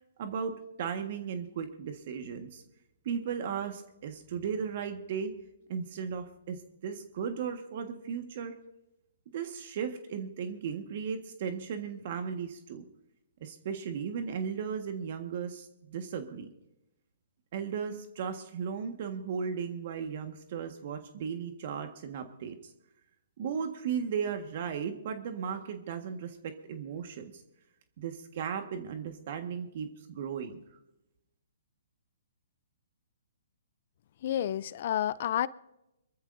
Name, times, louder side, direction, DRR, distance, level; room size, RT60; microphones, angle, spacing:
voice 1, 0.2-2.6 3.0-5.3 5.7-8.5 9.3-12.8 13.4-16.5 17.5-22.7 23.4-27.4 28.0-30.6, right 7 dB, 50° right, 6 dB, 1.6 m, -36 dB
voice 2, 34.2-35.5, left 11 dB, 50° left, 19 dB, 0.5 m, -30 dB
25.5 x 14.5 x 2.7 m, 0.88 s
hypercardioid pair, 140°, 0 cm